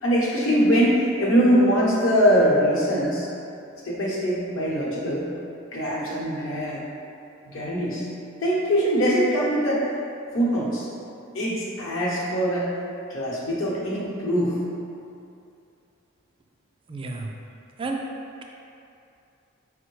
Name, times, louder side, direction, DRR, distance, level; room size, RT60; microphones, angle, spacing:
voice 1, 0.0-3.3 3.8-5.3 5.7-6.9 7.5-8.1 8.4-9.8 10.3-10.9 11.3-12.7 13.1-14.6, equal, 75° left, -5 dB, 0.9 m, -22 dB
voice 2, 16.9-17.3 17.8-18.0, right 3 dB, 25° right, 1 dB, 0.3 m, -31 dB
4.5 x 2.1 x 4.5 m, 2.6 s
head